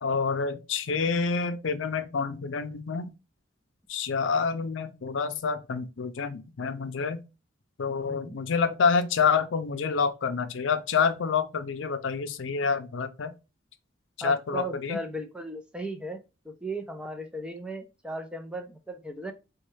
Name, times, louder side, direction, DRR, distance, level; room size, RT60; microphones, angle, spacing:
voice 1, 0.0-3.1 3.9-7.2 7.8-13.3 14.2-15.0, left 5 dB, 85° left, 0.5 m, -27 dB
voice 2, 8.0-8.4 14.2-16.2 16.5-19.3, right 1 dB, 5° right, 0.5 m, -36 dB
4.1 x 2.3 x 3.1 m
head